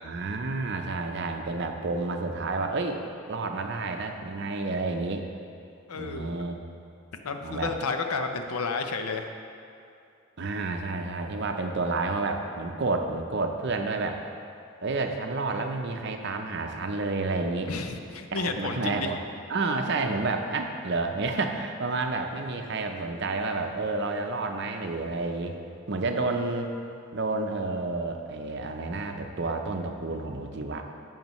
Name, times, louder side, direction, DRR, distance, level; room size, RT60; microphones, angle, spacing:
voice 1, 0.0-5.3 5.9-6.6 7.4-7.7 10.4-14.2 14.8-17.7 18.3-19.2 19.5-25.6 25.9-26.7 27.1-30.8, right 3 dB, 50° right, 5 dB, 0.6 m, -30 dB
voice 2, 5.9-6.4 7.1-9.3 17.7-19.1, left 4 dB, 85° left, 6 dB, 0.6 m, -31 dB
10.5 x 7.2 x 3.1 m, 2.6 s
head